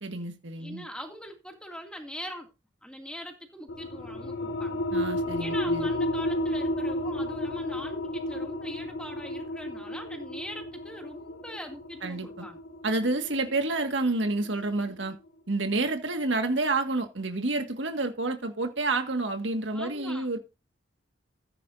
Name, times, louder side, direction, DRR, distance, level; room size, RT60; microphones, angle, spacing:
voice 1, 0.0-0.9 4.9-5.9 12.0-12.5 12.8-15.2 15.5-20.4, right 2 dB, 80° right, 1.9 m, -29 dB
voice 2, 0.6-2.5 2.8-4.8 5.4-12.6 19.7-20.3, equal, 5° left, 2.5 m, -42 dB
sound 1, 3.7-14.9, left 1 dB, 75° left, 2.0 m, -32 dB
15.0 x 9.9 x 2.7 m
head